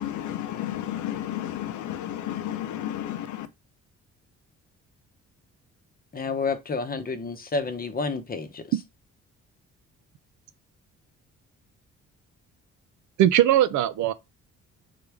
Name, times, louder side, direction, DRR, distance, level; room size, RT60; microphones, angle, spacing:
voice 1, 0.0-3.5, left 12 dB, 70° left, 0.6 m, -32 dB
voice 2, 6.1-8.6, left 4 dB, 30° left, 0.8 m, -29 dB
voice 3, 13.2-14.1, right 12 dB, 75° right, 0.5 m, -20 dB
3.8 x 3.3 x 3.4 m
cardioid pair, 90°, 30 cm